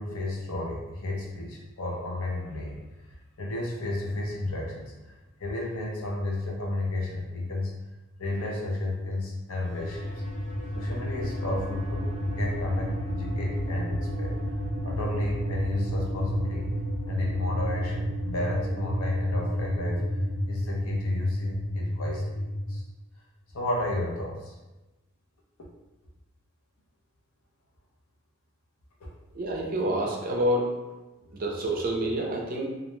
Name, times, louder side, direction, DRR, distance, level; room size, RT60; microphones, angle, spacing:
voice 1, 0.0-2.9 3.4-5.1 5.4-7.7 8.2-10.2 10.7-14.3 14.8-16.7 17.0-20.0 20.5-22.4 22.7-22.8 23.5-24.5 29.0-29.1 31.2-31.3, left 2 dB, 75° left, -2 dB, 0.6 m, -32 dB
sound 1, 9.5-22.8, equal, 35° left, 0.4 m, -31 dB
voice 2, 29.3-30.9 31.3-32.7, right 1 dB, 40° right, -1 dB, 0.4 m, -28 dB
2.4 x 2.1 x 3.0 m, 1.1 s
head